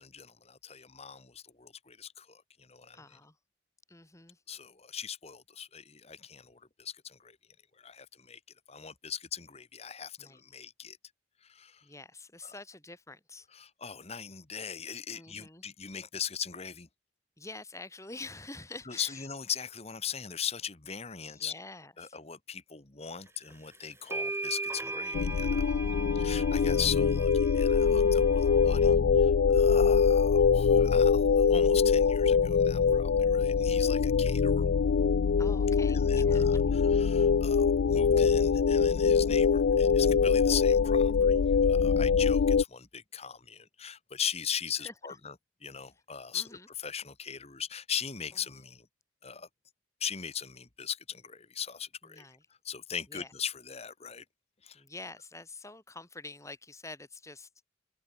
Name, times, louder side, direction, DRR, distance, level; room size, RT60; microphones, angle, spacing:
voice 1, 0.0-3.2 4.5-7.4 7.7-8.4 8.7-11.0 11.4-11.9 12.4-12.5 13.5-16.9 18.9-21.5 22.0-25.7 26.1-34.7 35.9-45.3 45.6-48.9 49.2-49.5 50.0-52.3 52.6-54.2 54.6-54.8, left 8 dB, 30° left, 1.4 m, -39 dB
voice 2, 2.9-3.4 3.9-4.4 10.2-10.4 11.8-13.5 15.1-15.7 17.4-19.2 21.2-22.2 25.7-26.2 35.4-36.8 44.8-44.9 46.3-46.7 52.1-52.4 53.1-53.3 54.7-57.5, left 2 dB, 15° left, 3.8 m, -47 dB
sound 1, 23.5-23.6 24.1-28.9, right 3 dB, 15° right, 1.3 m, -39 dB
sound 2, 25.1-42.6, left 6 dB, 65° left, 0.4 m, -24 dB
open air
head